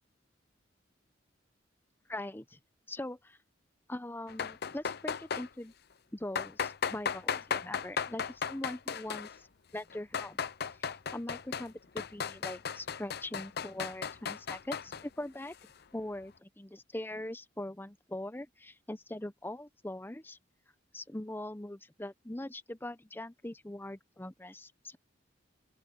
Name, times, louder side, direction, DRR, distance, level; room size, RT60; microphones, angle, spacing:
voice 1, 2.1-2.6 2.9-3.4 3.9-5.7 6.1-9.5 9.7-10.4 10.8-15.6 15.9-20.4 20.9-25.0, left 1 dB, 10° left, 0.8 m, -42 dB
sound 1, 4.3-5.5 6.4-9.4 9.9-11.7 12.0-15.0, left 6 dB, 60° left, 0.7 m, -35 dB
open air
head